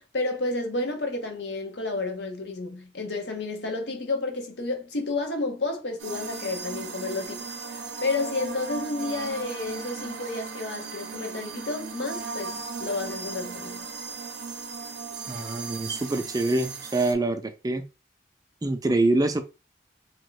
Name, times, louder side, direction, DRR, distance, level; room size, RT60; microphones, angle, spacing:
voice 1, 0.0-7.4 7.7-13.9, left 2 dB, 75° left, 0.8 m, -31 dB
sound 1, 6.0-17.1, right 4 dB, 75° right, 0.6 m, -37 dB
voice 2, 15.3-17.8 18.6-19.4, right 2 dB, 20° right, 0.4 m, -25 dB
2.9 x 2.2 x 3.8 m
head